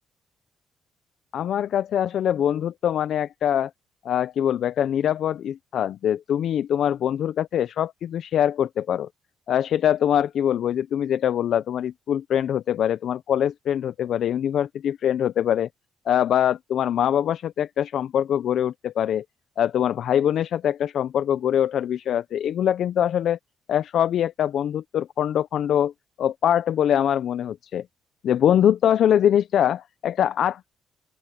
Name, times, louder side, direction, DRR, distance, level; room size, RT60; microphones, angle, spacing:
voice 1, 1.3-3.7 4.0-9.1 9.5-15.7 16.1-19.2 19.6-23.4 23.7-25.9 26.2-27.8 28.2-30.7, left 10 dB, 70° left, 0.6 m, -23 dB
open air
cardioid pair, 90°, 0 cm